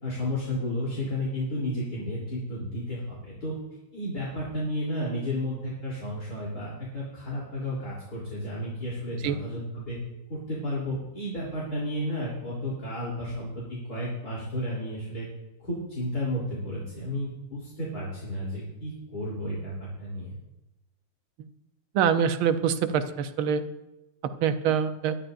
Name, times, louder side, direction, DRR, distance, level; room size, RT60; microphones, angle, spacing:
voice 1, 0.0-3.6 3.9-10.0 10.3-15.3 15.6-20.3, left 1 dB, 45° left, -6 dB, 3.9 m, -32 dB
voice 2, 21.9-23.6 24.2-25.2, right 8 dB, 75° right, 9 dB, 1.6 m, -25 dB
22.0 x 11.5 x 2.6 m, 0.98 s
omnidirectional pair, 2.3 m